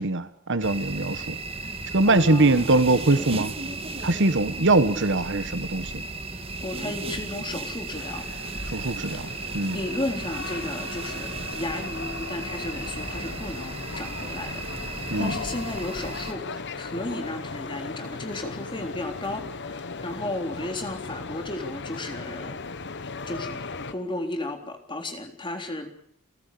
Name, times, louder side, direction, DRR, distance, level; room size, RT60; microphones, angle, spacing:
voice 1, 0.0-1.4 1.9-3.5 4.0-6.0 8.7-9.8 15.1-15.4, right 2 dB, 55° right, 13 dB, 1.3 m, -22 dB
sound 1, 0.6-16.3, right 3 dB, 25° right, 1.8 m, -35 dB
voice 2, 2.0-2.8 3.1-3.2 6.3-8.3 9.1-22.6 23.3-23.6 23.9-25.9, left 1 dB, 20° left, 5 dB, 3.8 m, -34 dB
sound 2, 8.0-23.9, left 4 dB, 55° left, 1.3 m, -37 dB
30.0 x 14.5 x 8.5 m, 0.64 s
head